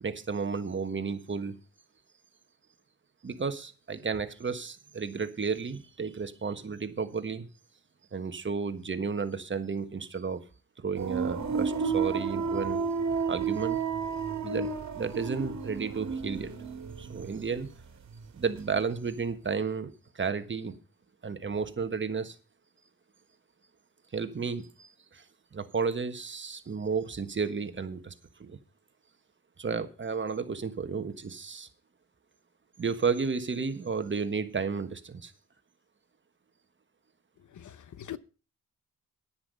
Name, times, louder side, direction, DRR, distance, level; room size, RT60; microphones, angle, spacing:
voice 1, 0.0-1.6 3.2-7.5 8.1-10.4 10.8-12.8 13.3-13.8 14.4-14.7 14.9-16.5 17.0-17.7 18.3-20.7 21.2-22.4 24.1-25.2 25.5-28.1 28.4-28.6 29.6-31.7 32.8-35.3, right 5 dB, 35° right, 1.4 m, -32 dB
sound 1, 11.0-17.8 18.1-18.8, right 5 dB, 55° right, 2.2 m, -32 dB
voice 2, 37.6-38.2, left 11 dB, 60° left, 0.9 m, -41 dB
10.0 x 10.0 x 5.4 m
cardioid pair, 100°, 33 cm